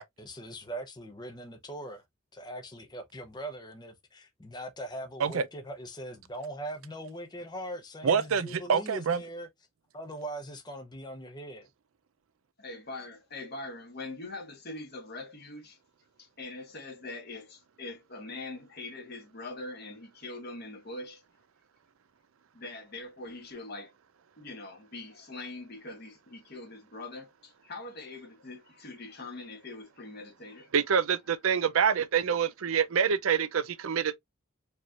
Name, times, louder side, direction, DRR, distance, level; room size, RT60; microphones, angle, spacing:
voice 1, 0.2-2.0 2.3-9.5 9.9-11.7, right 1 dB, 20° left, 0.8 m, -41 dB
voice 2, 8.0-9.2 30.7-34.2, right 7 dB, 85° right, 0.5 m, -26 dB
voice 3, 12.6-15.8 16.2-21.2 22.5-23.9 24.4-30.7, left 2 dB, 50° left, 1.7 m, -43 dB
4.6 x 3.1 x 2.4 m
head